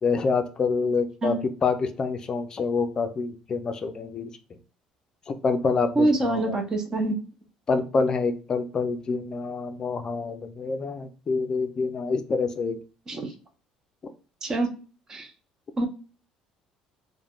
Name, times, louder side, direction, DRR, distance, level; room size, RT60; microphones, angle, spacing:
voice 1, 0.0-4.3 5.3-6.6 7.7-12.8, left 4 dB, 35° left, 8 dB, 0.4 m, -27 dB
voice 2, 5.9-7.2 13.1-13.3 14.4-14.7 15.1-15.3 15.8-15.9, right 2 dB, 30° right, 4 dB, 0.7 m, -25 dB
3.2 x 2.2 x 2.3 m, 0.37 s
cardioid pair, 115°, 2 cm